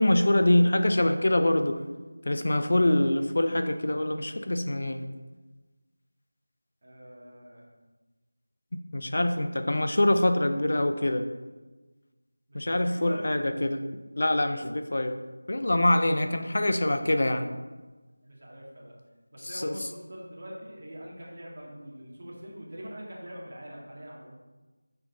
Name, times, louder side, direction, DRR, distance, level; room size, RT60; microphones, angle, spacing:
voice 1, 0.0-1.8 2.3-5.0 8.9-11.3 12.5-13.9 14.2-15.2 15.5-17.5 19.5-19.7, left 1 dB, 55° left, 7 dB, 0.6 m, -24 dB
voice 2, 6.8-7.7 12.5-13.3 16.2-16.6 18.2-18.9 19.3-24.3, equal, 40° right, -4 dB, 2.0 m, -43 dB
6.3 x 6.2 x 3.9 m, 1.2 s
figure-of-eight pair, 175°, 0 cm